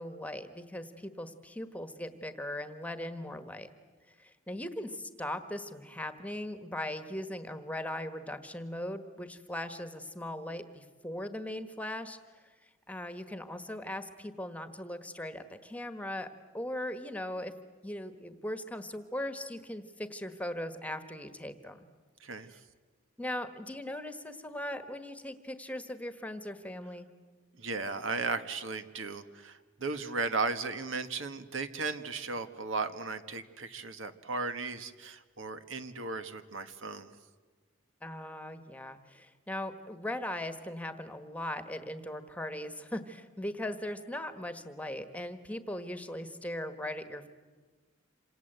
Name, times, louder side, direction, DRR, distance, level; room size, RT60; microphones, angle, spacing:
voice 1, 0.0-3.7 4.1-12.2 12.9-16.3 16.5-17.5 17.8-21.9 23.2-27.1 38.0-47.3, left 1 dB, 5° left, 10 dB, 1.4 m, -39 dB
voice 2, 22.2-22.6 27.6-37.1, right 3 dB, 75° right, 9 dB, 1.6 m, -36 dB
27.5 x 26.5 x 8.1 m, 1.4 s
head